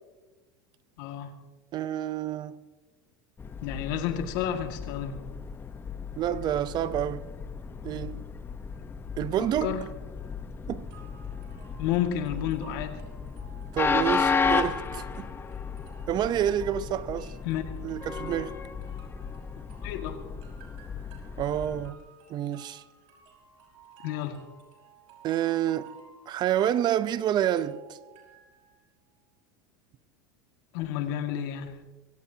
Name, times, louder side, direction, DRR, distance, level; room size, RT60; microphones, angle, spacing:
voice 1, 1.0-1.3 3.6-5.2 9.4-9.8 11.8-13.0 17.4-17.6 19.8-20.2 24.0-24.4 30.7-31.8, left 10 dB, 70° left, 2.1 m, -31 dB
voice 2, 1.7-2.6 6.2-7.3 7.8-8.3 9.2-9.8 10.7-10.9 13.7-15.3 16.1-17.3 17.8-18.6 21.4-22.0 22.3-22.8 25.2-25.9 26.3-27.8, right 11 dB, 40° right, 0.7 m, -28 dB
Train, 3.4-21.9, left 5 dB, 20° left, 1.0 m, -34 dB
sound 1, 10.9-28.8, right 6 dB, 60° right, 5.5 m, -55 dB
24.5 x 17.0 x 2.9 m
supercardioid pair, 120°, 11 cm